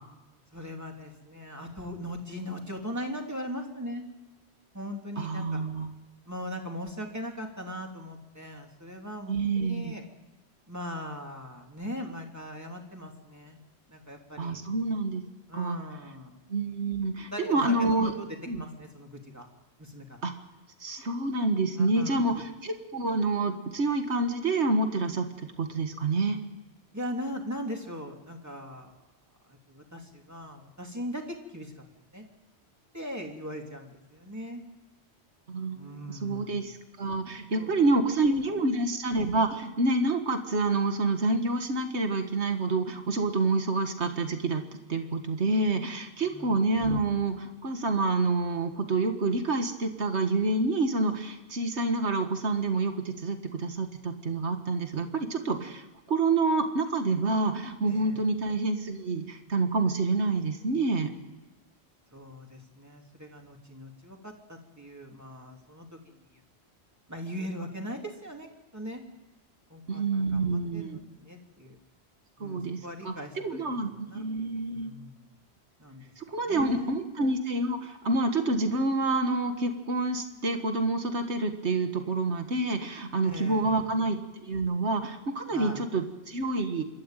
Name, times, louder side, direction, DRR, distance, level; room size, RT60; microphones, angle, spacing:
voice 1, 0.5-4.1 4.7-5.6 6.3-10.0 10.7-13.6 13.9-14.6 15.5-16.4 17.3-19.5 19.8-20.2 21.7-22.3 26.9-28.9 29.5-31.8 32.1-32.2 32.9-34.6 35.7-36.7 37.5-37.8 46.2-46.6 57.8-58.2 62.1-66.3 67.1-69.0 69.7-71.8 72.4-74.2 74.7-75.4 75.8-76.0 76.5-77.0 83.2-83.9 85.5-85.8, equal, 15° right, 2 dB, 3.0 m, -40 dB
voice 2, 5.2-5.9 9.3-9.9 14.4-15.2 15.5-15.8 16.5-18.1 18.5-18.6 20.2-20.3 20.8-26.4 35.5-44.6 44.9-55.8 56.1-61.1 69.9-71.0 72.4-73.1 73.4-74.9 76.2-86.8, right 3 dB, 85° right, 6 dB, 2.0 m, -28 dB
27.0 x 13.0 x 9.0 m, 1.1 s
omnidirectional pair, 1.1 m